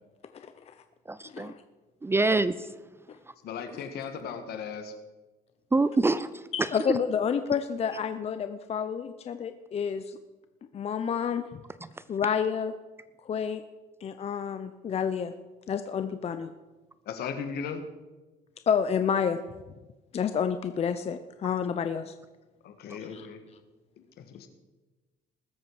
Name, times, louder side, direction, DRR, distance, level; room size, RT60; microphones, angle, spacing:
voice 1, 0.3-0.7 1.3-1.5 3.1-3.2 6.5-10.2 10.7-11.4 12.1-12.7 13.2-13.6 14.0-15.3 15.7-16.5 18.7-19.4 20.1-22.1 23.1-23.3, left 7 dB, 40° left, 9 dB, 0.7 m, -29 dB
voice 2, 1.1-1.5 2.0-2.7 5.7-7.0 11.8-11.9, right 3 dB, 15° right, 15 dB, 0.5 m, -26 dB
voice 3, 3.4-4.9 17.1-17.8 22.6-23.4 24.0-24.5, left 6 dB, 70° left, 7 dB, 1.7 m, -37 dB
19.5 x 8.1 x 4.8 m, 1.2 s
cardioid pair, 110°, 17 cm